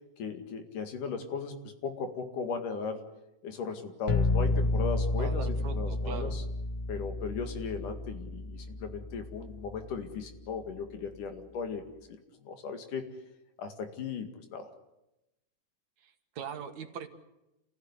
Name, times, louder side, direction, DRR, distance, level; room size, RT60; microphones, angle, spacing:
voice 1, 0.2-3.0 3.4-5.5 5.7-6.4 6.9-12.2 12.4-13.1 13.6-14.7, left 5 dB, 85° left, 6 dB, 3.7 m, -37 dB
sound 1, 4.1-9.9, left 2 dB, 55° left, 2.6 m, -31 dB
voice 2, 5.2-6.4 16.0-17.1, right 7 dB, 70° right, 7 dB, 2.8 m, -41 dB
28.5 x 16.0 x 9.8 m, 0.94 s
omnidirectional pair, 3.6 m